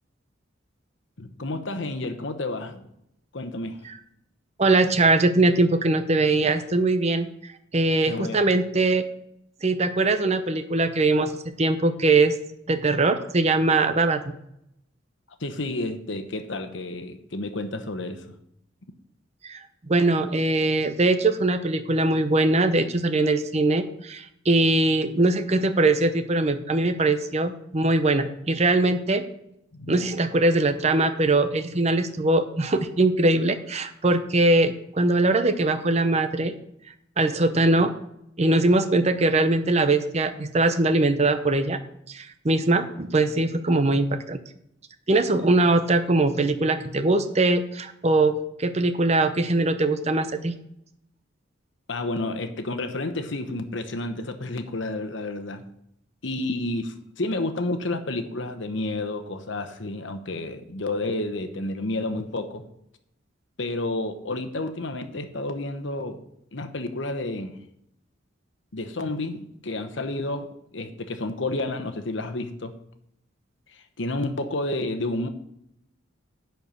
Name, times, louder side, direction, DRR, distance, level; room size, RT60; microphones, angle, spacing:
voice 1, 1.2-2.9 3.3-3.8 8.0-8.4 15.4-18.4 29.7-29.9 51.9-55.6 56.2-62.6 63.6-66.2 66.5-67.6 68.7-72.8 74.0-75.3, left 2 dB, 70° left, 1.0 m, -30 dB
voice 2, 4.6-7.3 7.7-9.0 9.6-12.3 12.7-14.3 19.4-19.6 19.9-29.2 29.9-36.5 37.2-37.9 38.4-41.8 42.1-44.4 45.1-50.5, right 2 dB, 35° right, 0.7 m, -21 dB
10.5 x 4.6 x 6.8 m
head